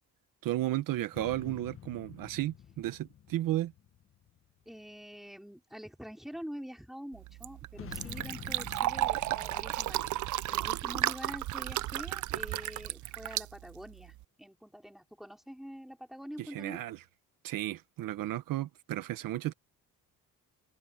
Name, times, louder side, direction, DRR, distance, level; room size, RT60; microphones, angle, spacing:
voice 1, 0.4-3.7 16.5-17.0 17.4-19.5, right 14 dB, 80° right, 1.2 m, -33 dB
sound 1, 1.1-4.8 7.7-11.5, left 9 dB, 40° left, 1.4 m, -49 dB
voice 2, 4.6-10.1 10.4-16.8, equal, ahead, 3.4 m, -46 dB
Fill (with liquid), 7.1-14.2, right 15 dB, 60° right, 0.6 m, -34 dB
open air
cardioid pair, 155°, 33 cm